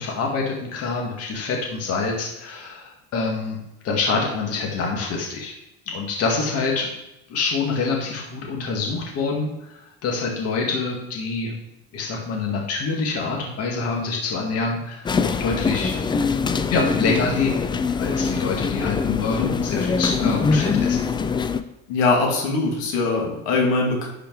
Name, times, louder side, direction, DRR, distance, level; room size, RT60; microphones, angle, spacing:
voice 1, 0.0-3.6 3.8-5.5 5.9-6.9 7.3-11.5 11.9-15.9 16.3-17.6 18.0-21.0, left 4 dB, 50° left, -1 dB, 1.9 m, -26 dB
sound 1, 15.1-21.6, left 5 dB, 15° left, 0.3 m, -23 dB
voice 2, 21.9-24.1, left 3 dB, 90° left, -1 dB, 2.6 m, -22 dB
11.0 x 5.0 x 4.7 m, 0.90 s
cardioid pair, 130°, 31 cm